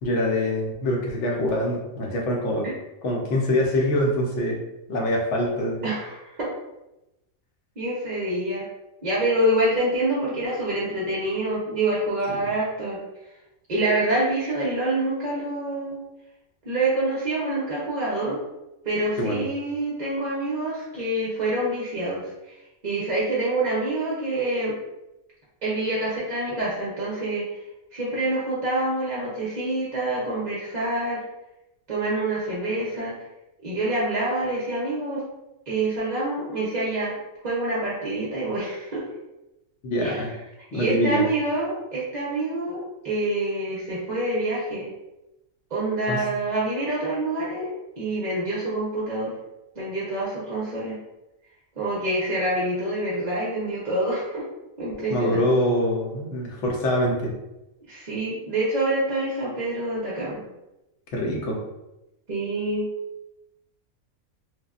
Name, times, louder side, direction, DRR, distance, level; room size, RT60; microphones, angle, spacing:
voice 1, 0.0-2.7 3.0-4.6 4.9-5.9 12.3-12.4 19.2-19.5 39.8-40.3 40.7-41.3 46.1-46.3 55.1-57.3 61.1-61.6, left 1 dB, 65° left, -1 dB, 0.9 m, -24 dB
voice 2, 5.8-6.5 7.8-8.6 9.0-13.0 13.7-16.0 16.6-18.4 18.8-22.3 22.8-24.7 25.6-27.4 27.9-31.2 31.9-33.1 33.6-35.2 35.7-37.1 37.4-39.0 40.0-40.2 40.7-44.9 45.7-49.3 49.8-51.0 51.8-54.4 54.8-55.5 57.9-60.4 62.3-62.9, right 1 dB, 45° right, -6 dB, 0.6 m, -26 dB
3.3 x 2.2 x 2.4 m, 0.94 s
omnidirectional pair, 1.5 m